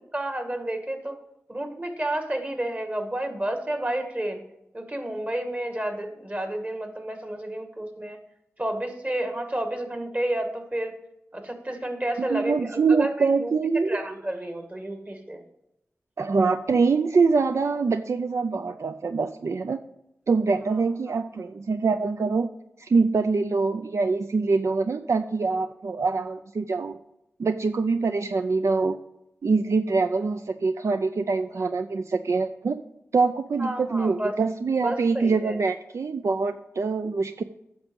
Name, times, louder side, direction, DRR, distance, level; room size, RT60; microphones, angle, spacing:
voice 1, 0.1-1.2 1.5-4.4 4.7-8.2 8.6-10.9 11.3-13.5 13.9-15.4 33.6-34.3 34.8-35.6, right 1 dB, 30° right, 5 dB, 1.8 m, -30 dB
voice 2, 12.3-14.0 16.2-19.8 20.3-22.5 22.8-27.0 27.4-29.0 29.4-32.8 33.1-37.4, right 4 dB, 70° right, 8 dB, 0.4 m, -24 dB
9.6 x 6.1 x 5.3 m, 0.85 s
cardioid pair, 45°, 5 cm